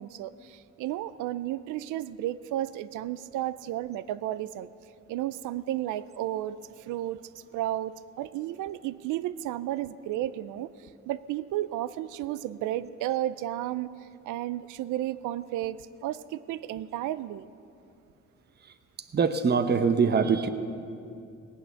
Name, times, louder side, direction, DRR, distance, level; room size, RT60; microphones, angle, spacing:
voice 1, 0.0-4.7 5.1-7.2 7.5-10.7 11.1-13.9 14.2-17.5, right 13 dB, 90° right, 16 dB, 0.5 m, -33 dB
voice 2, 19.1-20.5, right 5 dB, 35° right, 9 dB, 0.8 m, -23 dB
18.5 x 8.7 x 7.0 m, 2.6 s
cardioid pair, 90°, 30 cm